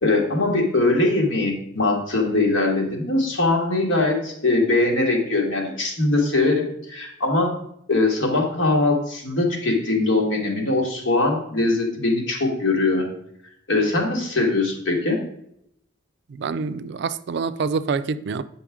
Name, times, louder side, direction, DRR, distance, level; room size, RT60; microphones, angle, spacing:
voice 1, 0.0-7.5 7.9-13.1 13.7-15.2, left 2 dB, 70° left, 1.7 m, -21 dB
voice 2, 16.3-18.4, right 5 dB, 60° right, 0.4 m, -26 dB
8.6 x 5.4 x 3.6 m
head